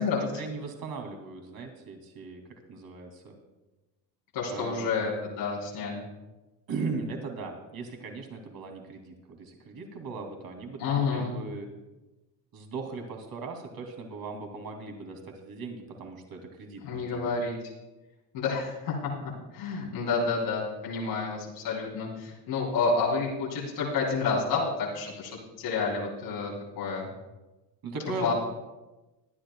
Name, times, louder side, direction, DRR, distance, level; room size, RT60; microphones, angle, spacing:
voice 1, 0.2-2.4 2.7-3.4 4.5-5.1 6.7-11.7 12.5-17.3 27.8-28.3, right 4 dB, 45° right, 3 dB, 2.9 m, -38 dB
voice 2, 4.3-6.1 10.8-11.4 16.8-17.5 18.3-19.0 19.2-27.1 28.2-28.3, left 4 dB, 70° left, -4 dB, 3.6 m, -29 dB
22.0 x 10.5 x 2.4 m, 1.1 s
supercardioid pair, 85°, 49 cm